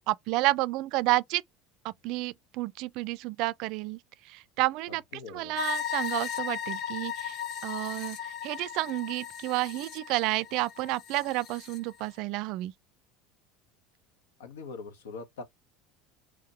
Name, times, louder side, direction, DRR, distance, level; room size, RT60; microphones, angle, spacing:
voice 1, 0.0-1.4 1.8-4.0 4.3-5.0 5.3-7.4 7.6-12.7, right 19 dB, 60° right, 0.4 m, -30 dB
voice 2, 4.9-5.6 14.4-15.4, left 4 dB, 75° left, 1.3 m, -43 dB
sound 1, 5.5-11.8, left 8 dB, 50° left, 0.9 m, -36 dB
3.7 x 3.2 x 4.3 m
hypercardioid pair, 75°, 0 cm